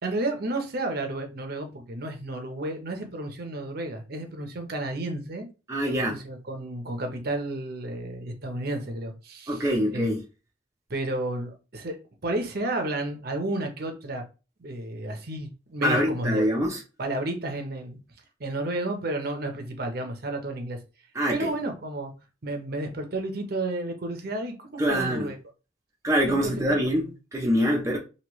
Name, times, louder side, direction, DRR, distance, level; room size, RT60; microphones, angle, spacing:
voice 1, 0.0-5.5 5.8-9.6 9.9-10.1 10.9-12.0 12.2-14.2 14.6-16.6 17.0-18.0 18.4-20.8 21.3-22.1 22.4-25.4 26.3-26.5, right 2 dB, 55° right, 0.8 m, -32 dB
voice 2, 5.7-6.2 9.5-10.2 15.8-16.8 21.1-21.5 24.8-25.3 26.0-28.0, equal, 15° right, 0.6 m, -24 dB
3.0 x 2.8 x 3.0 m
head